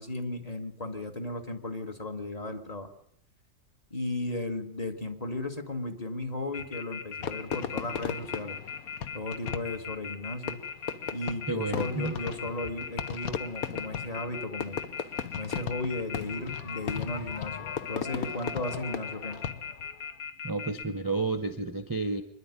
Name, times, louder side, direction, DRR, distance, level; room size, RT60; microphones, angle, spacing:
voice 1, 0.0-2.9 3.9-8.6 9.1-10.6 11.1-14.8 15.4-19.4, left 2 dB, 25° left, 5 dB, 1.7 m, -35 dB
Telephone, 6.5-20.8, left 6 dB, 90° left, 2.2 m, -39 dB
Fireworks, 7.2-19.9, left 8 dB, 60° left, 1.4 m, -37 dB
voice 2, 11.5-12.1 20.4-22.2, right 3 dB, 15° right, 9 dB, 0.8 m, -31 dB
24.5 x 11.0 x 9.8 m, 0.73 s
omnidirectional pair, 1.8 m